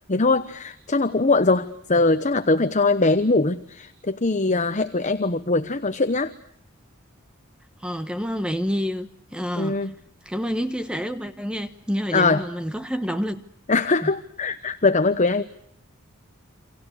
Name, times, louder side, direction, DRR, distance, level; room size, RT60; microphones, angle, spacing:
voice 1, 0.1-6.3 9.6-9.9 12.1-12.4 13.7-15.4, left 3 dB, 35° left, 1.0 m, -21 dB
voice 2, 7.8-9.9 10.2-13.4 14.0-14.1, equal, 5° right, 1.1 m, -28 dB
29.0 x 26.0 x 6.5 m
head